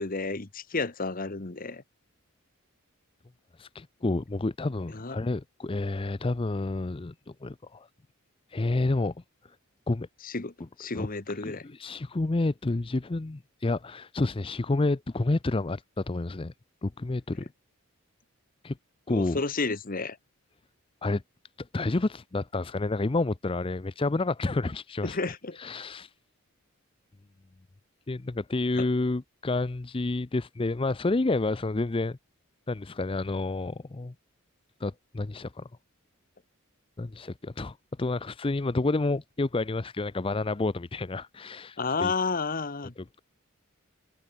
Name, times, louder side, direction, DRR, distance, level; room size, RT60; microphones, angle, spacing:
voice 1, 0.0-1.8 4.9-5.2 10.2-10.5 10.8-11.6 19.1-20.2 25.0-25.6 28.7-28.9 41.8-42.9, left 3 dB, 40° left, 1.3 m, -31 dB
voice 2, 3.6-7.1 7.4-7.9 8.5-9.1 9.9-10.1 11.0-11.1 11.4-16.5 16.8-17.5 18.6-18.8 19.1-19.4 21.0-21.2 21.6-25.2 25.6-26.1 28.1-32.2 32.7-34.1 34.8-35.7 37.0-42.1, left 2 dB, 25° left, 0.5 m, -29 dB
head